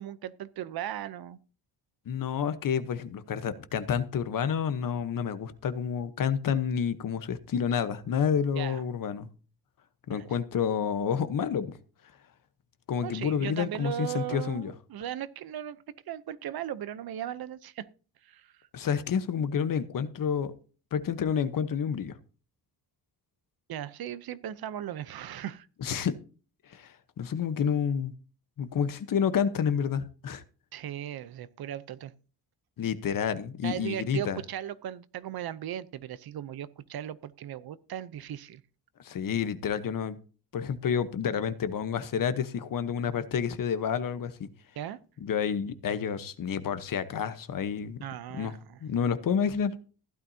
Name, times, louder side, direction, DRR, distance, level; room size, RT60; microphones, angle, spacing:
voice 1, 0.0-1.4 8.5-8.8 10.1-10.3 13.0-17.9 18.2-18.7 23.7-25.7 30.7-32.1 33.6-38.6 44.8-45.0 48.0-48.8, right 11 dB, 70° right, 0.8 m, -37 dB
voice 2, 2.1-9.3 10.1-11.7 12.9-14.7 18.7-20.5 20.9-22.2 25.8-26.1 26.7-28.1 28.6-30.4 32.8-34.4 39.0-40.2 40.5-44.5 45.2-48.0 48.3-48.5 48.8-49.8, left 7 dB, 55° left, 1.1 m, -29 dB
15.5 x 12.0 x 2.8 m
wide cardioid pair, 155°, 38 cm